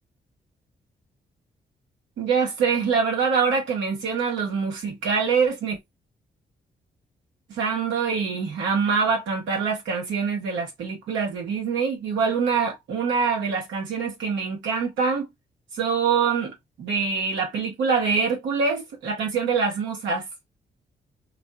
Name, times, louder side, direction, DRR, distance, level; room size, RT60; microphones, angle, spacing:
voice 1, 2.2-5.8 7.6-15.3 15.8-16.5 16.8-20.3, right 5 dB, 80° right, 1.2 m, -24 dB
2.7 x 2.6 x 2.2 m
supercardioid pair, 45°, 19 cm